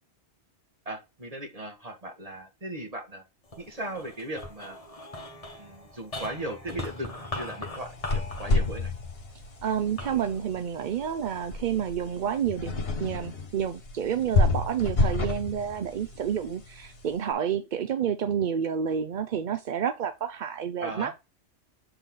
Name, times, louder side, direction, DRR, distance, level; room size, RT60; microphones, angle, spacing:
voice 1, 0.9-3.2 3.6-4.8 5.6-8.9 20.8-21.1, right 1 dB, 30° right, 1.9 m, -37 dB
sound 1, 3.4-11.9 12.5-13.2, left 2 dB, 30° left, 1.4 m, -41 dB
sound 2, 7.8-17.2, left 3 dB, 55° left, 1.6 m, -30 dB
voice 2, 9.6-21.1, right 8 dB, 55° right, 0.6 m, -29 dB
7.8 x 4.0 x 3.7 m
omnidirectional pair, 1.2 m